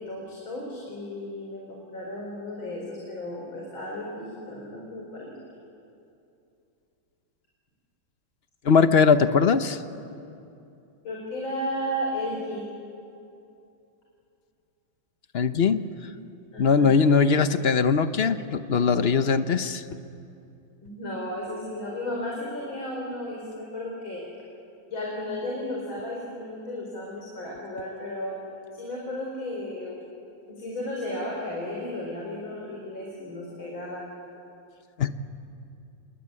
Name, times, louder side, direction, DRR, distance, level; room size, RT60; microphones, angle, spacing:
voice 1, 0.0-5.4 11.0-12.6 16.5-17.0 20.8-24.2 24.9-28.4 28.7-30.0 30.5-34.0, left 1 dB, 75° left, -3 dB, 5.4 m, -34 dB
voice 2, 8.6-9.8 15.3-15.8 16.6-19.8 35.0-35.2, left 5 dB, 55° left, 10 dB, 0.7 m, -20 dB
28.0 x 21.5 x 9.7 m, 2.7 s
omnidirectional pair, 2.2 m